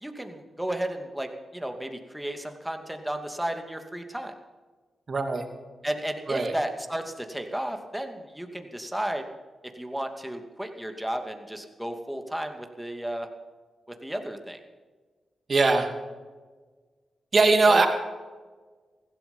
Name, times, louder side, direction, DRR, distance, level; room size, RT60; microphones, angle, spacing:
voice 1, 0.0-4.3 5.8-9.2 9.7-13.3 14.0-14.6 17.7-17.9, right 1 dB, 5° right, 5 dB, 2.5 m, -33 dB
voice 2, 5.1-5.4 6.3-6.5 15.5-15.9 17.3-17.9, right 3 dB, 50° right, 5 dB, 2.6 m, -20 dB
15.5 x 13.0 x 5.6 m, 1.4 s
supercardioid pair, 45°, 0 cm